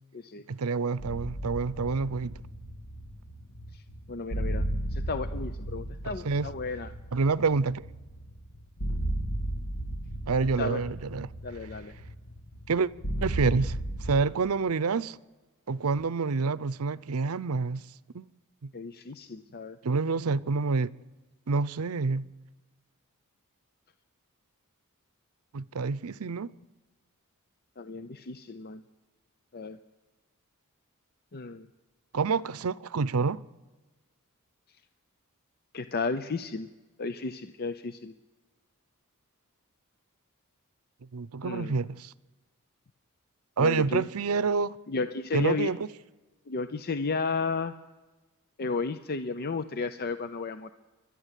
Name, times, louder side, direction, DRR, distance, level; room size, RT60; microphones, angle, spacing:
voice 1, 0.5-2.4 6.0-6.5 7.1-7.8 10.3-11.3 12.7-12.9 13.2-15.2 15.7-17.8 18.1-18.3 18.6-18.7 19.8-20.9 21.5-22.3 25.5-26.5 32.1-33.4 41.1-42.1 43.6-44.8 45.3-45.9, right 4 dB, 90° right, 0.6 m, -28 dB
sound 1, 1.0-14.2, right 1 dB, 75° left, 1.9 m, -35 dB
voice 2, 4.1-6.9 10.6-10.8 11.4-12.0 18.7-19.8 27.8-28.8 29.5-29.8 31.3-31.7 35.7-36.7 37.0-38.1 41.4-41.8 43.6-44.1 44.9-45.7 46.5-47.7 48.6-50.7, left 4 dB, 45° left, 0.7 m, -33 dB
29.0 x 12.0 x 8.3 m
head